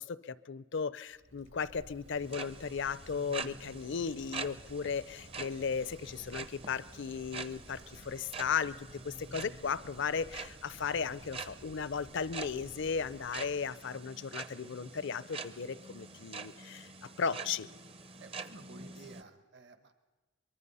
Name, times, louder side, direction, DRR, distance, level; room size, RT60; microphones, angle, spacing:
voice 1, 0.0-17.7, left 6 dB, 60° left, 18 dB, 0.6 m, -36 dB
Wind, 1.1-13.9, equal, 75° right, 2.4 m, -56 dB
sound 1, 2.1-19.2, right 4 dB, 30° right, 0.7 m, -46 dB
voice 2, 18.2-19.9, right 3 dB, 55° right, 9 dB, 1.2 m, -53 dB
23.5 x 22.5 x 5.5 m, 1.2 s
head